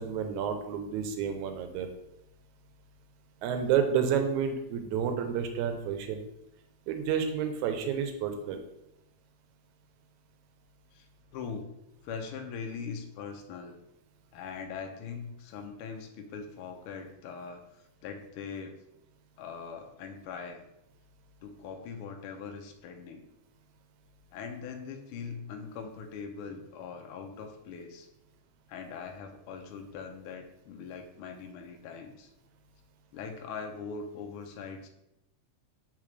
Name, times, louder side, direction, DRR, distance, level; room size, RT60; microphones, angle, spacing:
voice 1, 0.0-1.9 3.4-6.2 6.9-8.6, right 7 dB, 85° right, 6 dB, 2.1 m, -30 dB
voice 2, 11.3-11.7 12.0-13.8 14.3-17.6 18.0-18.7 19.4-20.6 21.4-23.2 24.3-28.1 28.7-32.3 33.1-34.9, left 5 dB, 85° left, 3 dB, 1.2 m, -41 dB
7.6 x 3.8 x 3.2 m, 0.84 s
omnidirectional pair, 3.4 m